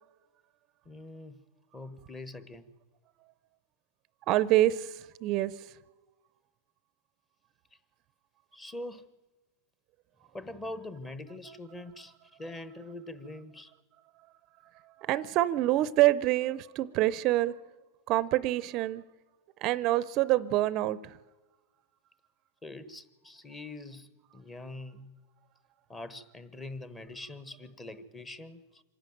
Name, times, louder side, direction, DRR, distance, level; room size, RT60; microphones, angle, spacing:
voice 1, 0.8-1.4 1.7-2.6 8.5-9.1 10.3-13.7 22.6-25.2 25.9-28.8, left 2 dB, 15° left, 14 dB, 1.0 m, -43 dB
voice 2, 4.3-5.7 14.8-17.6 18.1-19.0 19.6-21.2, right 15 dB, 40° right, 18 dB, 0.6 m, -26 dB
25.5 x 11.5 x 9.2 m, 1.2 s
supercardioid pair, 140°, 0 cm